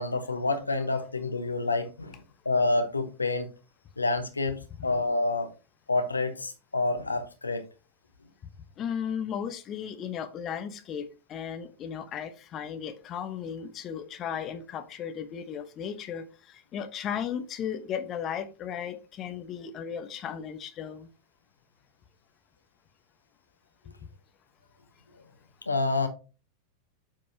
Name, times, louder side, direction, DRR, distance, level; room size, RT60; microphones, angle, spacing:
voice 1, 0.0-2.2 2.4-3.5 4.0-5.5 5.9-7.6 25.7-26.1, left 3 dB, 80° left, 1.0 m, -28 dB
voice 2, 8.8-21.1, left 8 dB, 30° left, 1.0 m, -35 dB
8.5 x 5.3 x 2.8 m
figure-of-eight pair, 90°, 0 cm